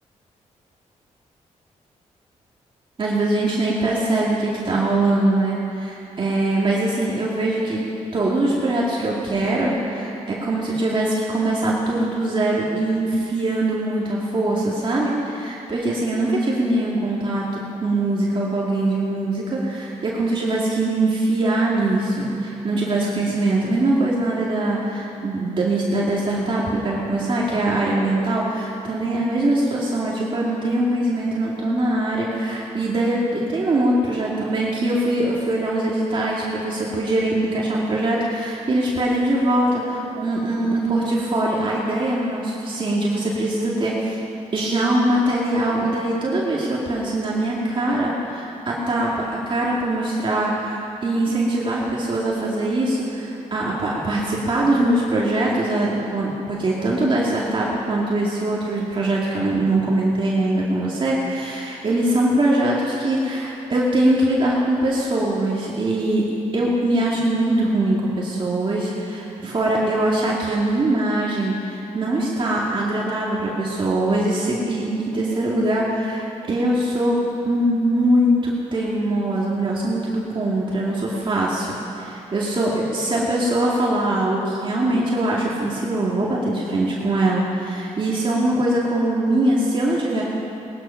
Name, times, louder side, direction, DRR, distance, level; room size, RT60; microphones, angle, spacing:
voice 1, 3.0-7.8 8.1-44.2 44.5-66.3 66.5-90.3, right 1 dB, 40° right, -5 dB, 2.5 m, -22 dB
19.0 x 12.0 x 5.8 m, 2.8 s
cardioid pair, 90°, 13 cm